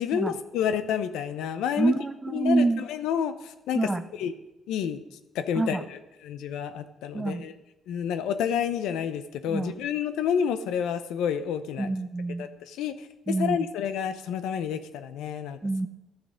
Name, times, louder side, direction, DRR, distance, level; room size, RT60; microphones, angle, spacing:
voice 1, 0.0-1.9 2.3-3.9 4.2-4.3 4.7-5.0 5.3-7.5 7.9-11.9 12.4-15.6, left 8 dB, 90° left, 10 dB, 0.7 m, -29 dB
voice 2, 1.8-2.8 3.7-4.0 5.6-5.8 7.1-7.5 9.5-9.8 11.8-12.5 13.3-13.7 15.6-15.9, right 2 dB, 20° right, 13 dB, 0.6 m, -26 dB
12.5 x 6.8 x 5.1 m, 0.95 s
cardioid pair, 90°, 0 cm